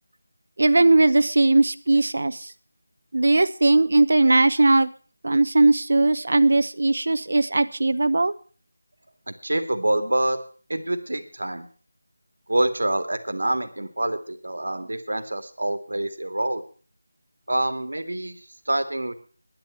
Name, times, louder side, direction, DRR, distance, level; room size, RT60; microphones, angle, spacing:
voice 1, 0.6-2.5 3.1-4.9 5.2-8.3, right 2 dB, 55° right, 14 dB, 0.9 m, -19 dB
voice 2, 9.3-10.4 10.7-11.7 12.5-16.6 17.5-19.1, right 1 dB, 85° right, 9 dB, 2.3 m, -26 dB
11.0 x 10.5 x 7.0 m, 0.40 s
figure-of-eight pair, 175°, 0 cm